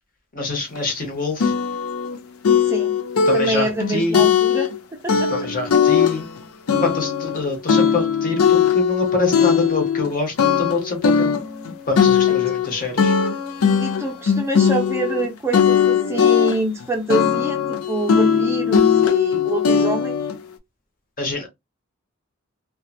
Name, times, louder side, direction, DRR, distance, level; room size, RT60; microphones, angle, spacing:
voice 1, 0.3-1.5 3.3-4.3 5.1-6.2 6.8-11.4 11.9-13.1 21.2-21.5, left 3 dB, 40° left, 0.9 m, -25 dB
sound 1, 0.8-0.9 1.4-2.2 2.4-4.8 5.1-6.4 6.7-10.1 10.4-15.3 15.5-16.8 17.1-20.4, left 7 dB, 85° left, 0.5 m, -19 dB
voice 2, 3.3-5.3 12.5-12.6 13.8-20.2, right 2 dB, 10° right, 0.5 m, -26 dB
2.7 x 2.3 x 2.3 m
head